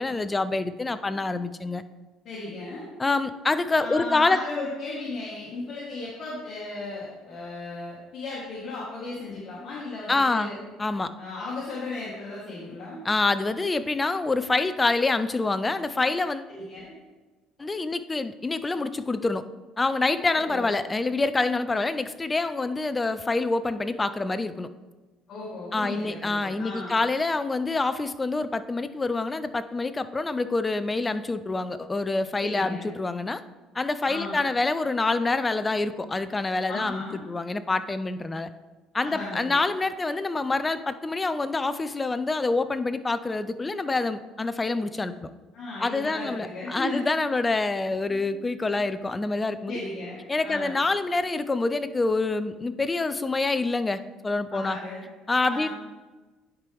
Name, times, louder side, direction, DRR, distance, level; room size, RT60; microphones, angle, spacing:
voice 1, 0.0-1.8 3.0-4.4 10.1-10.5 10.8-11.1 13.0-16.5 17.6-19.4 19.8-24.7 25.7-33.4 33.7-38.5 38.9-45.3 45.8-49.7 50.3-54.8 55.3-55.7, left 3 dB, 20° left, 12 dB, 0.4 m, -26 dB
voice 2, 2.2-2.9 3.7-10.6 11.2-13.0 15.9-16.1 16.5-16.9 20.2-20.7 25.3-26.9 32.4-32.9 34.0-34.4 36.7-37.2 39.0-39.5 45.5-47.0 49.7-50.8 54.5-55.0 55.5-55.7, left 2 dB, 50° left, -6 dB, 1.7 m, -36 dB
10.5 x 4.6 x 3.5 m, 1.2 s
cardioid pair, 110°, 0 cm